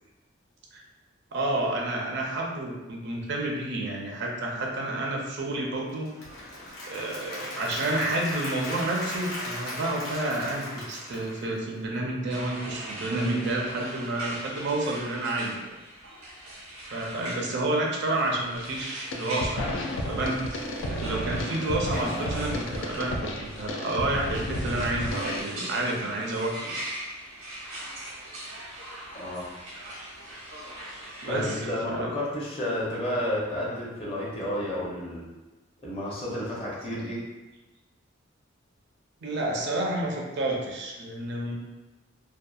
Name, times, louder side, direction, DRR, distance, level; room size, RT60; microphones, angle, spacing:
voice 1, 1.3-6.1 6.9-15.7 16.9-19.8 20.1-26.7 31.2-32.1 39.2-41.5, right 2 dB, 60° right, -1 dB, 0.5 m, -30 dB
Applause / Crowd, 5.9-12.0, left 1 dB, 85° left, 0.8 m, -37 dB
sound 1, 12.3-31.7, right 1 dB, 85° right, 0.8 m, -41 dB
sound 2, 18.5-18.8 19.1-25.4, left 1 dB, 70° left, 0.4 m, -32 dB
voice 2, 31.3-35.2 35.8-37.2, left 1 dB, 30° left, -5 dB, 0.6 m, -31 dB
2.6 x 2.3 x 2.3 m, 1.1 s
head